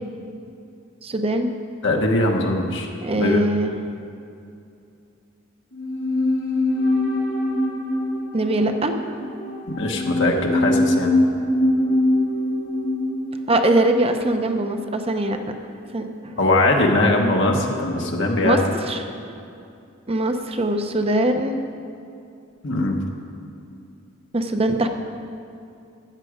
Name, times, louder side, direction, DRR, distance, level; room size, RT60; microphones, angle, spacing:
voice 1, 1.0-1.5 3.0-3.7 8.3-8.9 13.5-15.4 15.9-16.4 18.4-19.1 20.1-21.6 24.3-24.9, right 1 dB, 30° right, 6 dB, 0.7 m, -22 dB
voice 2, 1.8-2.9 3.2-3.4 9.7-11.1 16.4-18.6 22.6-23.0, left 2 dB, 60° left, 1 dB, 1.1 m, -20 dB
sound 1, 5.7-15.1 15.3-15.4, left 1 dB, 80° left, 3.3 m, -23 dB
13.0 x 9.0 x 5.0 m, 2.5 s
head